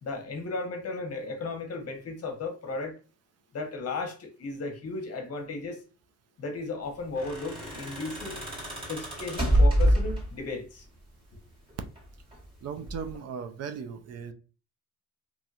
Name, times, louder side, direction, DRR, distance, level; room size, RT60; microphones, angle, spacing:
voice 1, 0.0-3.0 3.5-5.8 6.4-8.4 8.9-10.8, left 3 dB, 55° left, 0.9 m, -35 dB
sound 1, 7.0-10.6 11.7-12.4 12.9-13.2, equal, 15° right, 1.6 m, -26 dB
voice 2, 12.6-14.3, right 6 dB, 55° right, 0.5 m, -37 dB
3.0 x 2.7 x 2.4 m
cardioid pair, 90°, 30 cm